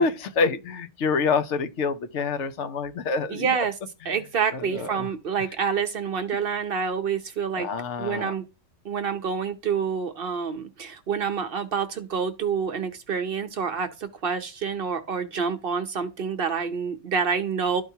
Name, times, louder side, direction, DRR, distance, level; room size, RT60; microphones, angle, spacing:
voice 1, 0.0-3.6 4.0-4.2 4.5-5.1 7.6-8.3, left 4 dB, 70° left, 1.0 m, -27 dB
voice 2, 3.3-3.7 4.1-7.7 8.0-8.4 8.8-17.8, right 6 dB, 55° right, 0.8 m, -27 dB
12.0 x 4.5 x 2.7 m
omnidirectional pair, 1.3 m